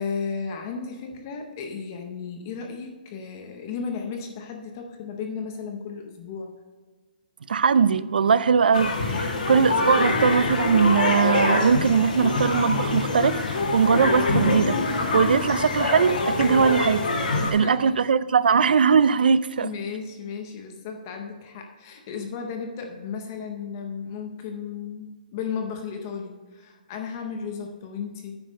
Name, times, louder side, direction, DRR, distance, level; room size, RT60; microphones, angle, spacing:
voice 1, 0.0-6.5 9.1-9.5 17.4-18.0 19.6-28.4, left 6 dB, 20° left, 0.6 m, -34 dB
voice 2, 7.5-17.0 17.5-19.7, right 6 dB, 80° right, 0.4 m, -21 dB
sound 1, 8.7-17.5, left 3 dB, 65° left, 1.9 m, -25 dB
9.0 x 5.3 x 5.2 m
hypercardioid pair, 180°, 5 cm